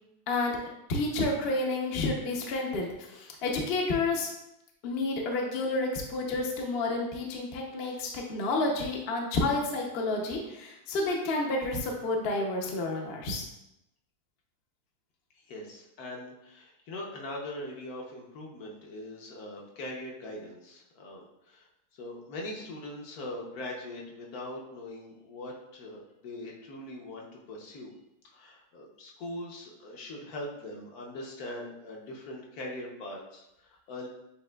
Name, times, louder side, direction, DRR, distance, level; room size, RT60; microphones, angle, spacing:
voice 1, 0.9-4.3 4.8-13.5, left 2 dB, 55° left, 0 dB, 0.7 m, -30 dB
voice 2, 15.5-21.7 22.0-27.9 28.3-34.1, left 1 dB, 70° left, -1 dB, 1.3 m, -41 dB
7.3 x 2.8 x 2.2 m, 0.87 s
omnidirectional pair, 1.7 m